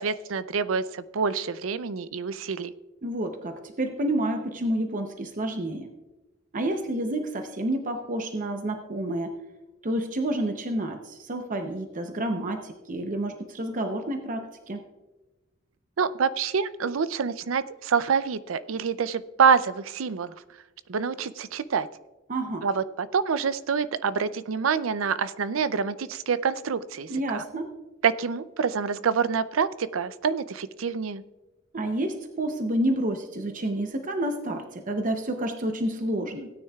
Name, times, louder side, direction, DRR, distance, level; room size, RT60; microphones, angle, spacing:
voice 1, 0.0-2.7 16.0-20.3 20.9-21.9 22.6-27.4 28.0-31.2, right 6 dB, 85° right, 14 dB, 0.5 m, -26 dB
voice 2, 3.0-5.9 6.5-9.3 9.8-14.8 22.3-22.7 27.1-27.7 31.7-36.5, right 1 dB, 40° right, 5 dB, 0.7 m, -29 dB
17.0 x 9.4 x 2.4 m, 1.1 s
head